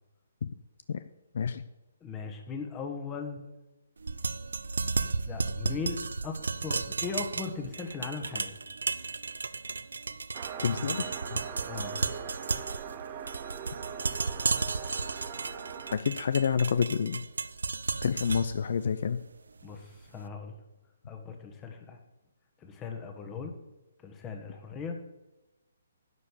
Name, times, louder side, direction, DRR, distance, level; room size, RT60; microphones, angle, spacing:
voice 1, 2.0-3.5 5.3-6.4 6.6-8.6 11.7-12.0 19.6-20.6 21.1-22.0 22.6-23.5 24.0-25.0, left 5 dB, 15° left, 5 dB, 1.4 m, -38 dB
sound 1, 4.0-20.1, right 4 dB, 85° right, 0.5 m, -34 dB
sound 2, 10.3-16.0, right 7 dB, 35° right, 0.8 m, -41 dB
voice 2, 10.6-11.4 15.9-17.2 18.0-19.2, left 6 dB, 60° left, 12 dB, 0.5 m, -28 dB
11.0 x 5.3 x 8.3 m, 1.0 s
hypercardioid pair, 155°, 0 cm